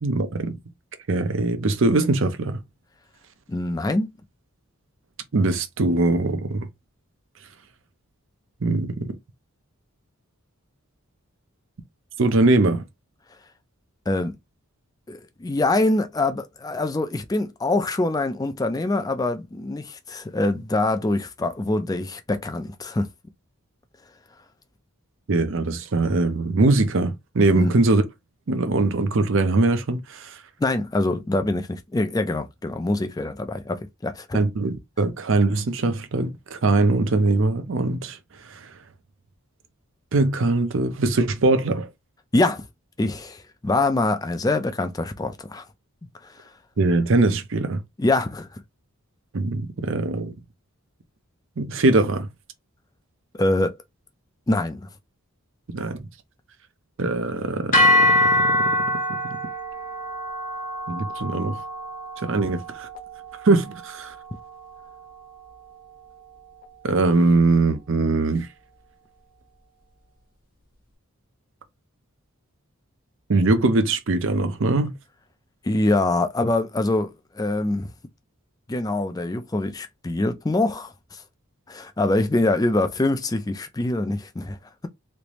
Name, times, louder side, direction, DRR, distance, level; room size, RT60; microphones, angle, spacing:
voice 1, 0.0-0.6 1.1-2.6 5.3-6.7 8.6-9.2 12.2-12.8 25.3-28.0 28.5-30.4 34.3-38.2 38.5-38.7 40.1-41.9 46.8-47.8 49.3-50.3 51.6-52.3 55.7-56.1 57.0-59.4 60.9-61.6 62.2-62.9 63.4-64.1 66.8-68.5 73.3-74.9, right 2 dB, 60° right, 0.6 m, -22 dB
voice 2, 3.5-4.1 14.1-14.3 15.1-23.1 27.5-27.7 30.6-34.5 42.3-42.7 43.0-45.6 46.2-46.3 48.0-48.6 53.3-53.8 54.5-54.9 75.6-77.9 78.7-81.2 81.7-84.6, left 2 dB, 15° left, 0.4 m, -24 dB
sound 1, 57.7-66.0, left 1 dB, 40° left, 0.9 m, -25 dB
3.3 x 2.6 x 3.0 m
head